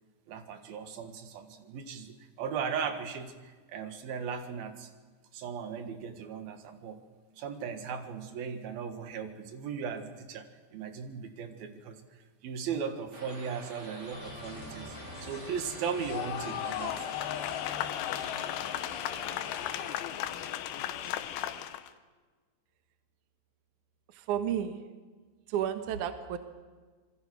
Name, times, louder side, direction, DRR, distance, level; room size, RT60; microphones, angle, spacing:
voice 1, 0.3-4.9 5.3-7.0 7.4-10.5 10.7-12.0 12.4-14.9 15.2-17.1, right 6 dB, 60° right, 8 dB, 2.9 m, -37 dB
sound 1, 13.1-20.0, right 1 dB, 25° right, 3.7 m, -47 dB
sound 2, 14.1-21.6, left 2 dB, 55° left, 6.4 m, -48 dB
sound 3, 16.0-21.9, left 12 dB, 80° left, 3.3 m, -35 dB
voice 2, 24.1-24.8 25.5-26.4, right 9 dB, 80° right, 9 dB, 1.7 m, -32 dB
26.5 x 22.5 x 6.4 m, 1.4 s
omnidirectional pair, 5.7 m